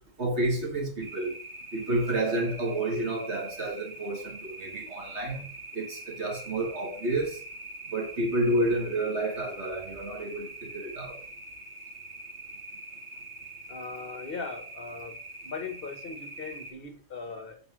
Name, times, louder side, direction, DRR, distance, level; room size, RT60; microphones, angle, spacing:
voice 1, 0.2-1.4 1.7-5.4 5.7-7.4 7.9-11.2, right 1 dB, 60° right, 2.3 m, -30 dB
sound 1, 1.0-16.7, right 2 dB, 90° right, 2.8 m, -44 dB
voice 2, 13.7-17.6, left 4 dB, 50° left, 1.4 m, -39 dB
5.8 x 4.4 x 6.1 m
omnidirectional pair, 1.3 m